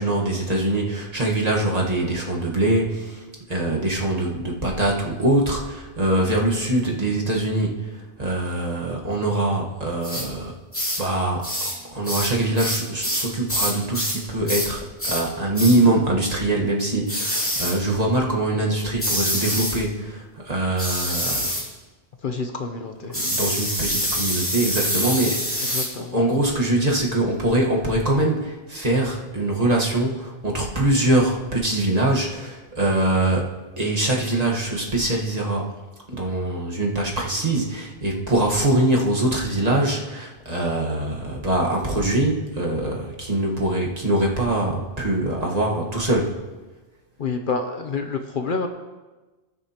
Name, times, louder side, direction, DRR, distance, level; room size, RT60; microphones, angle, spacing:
voice 1, 0.0-3.2 3.5-7.9 8.2-10.5 11.0-11.4 11.9-21.5 23.1-25.8 26.1-35.7 36.1-46.3, right 1 dB, 35° right, -2 dB, 1.5 m, -23 dB
sound 1, 10.0-10.3 10.7-11.0 11.4-11.8 12.0-14.2 14.5-14.7 15.0-15.3 15.5-15.8 17.1-17.8 19.0-19.8 20.8-21.7 23.1-25.9, equal, 10° left, 2.3 m, -26 dB
voice 2, 22.2-23.2 25.6-26.3 47.2-48.7, left 4 dB, 55° left, 5 dB, 0.8 m, -28 dB
19.5 x 6.7 x 2.9 m, 1.2 s
omnidirectional pair, 1.1 m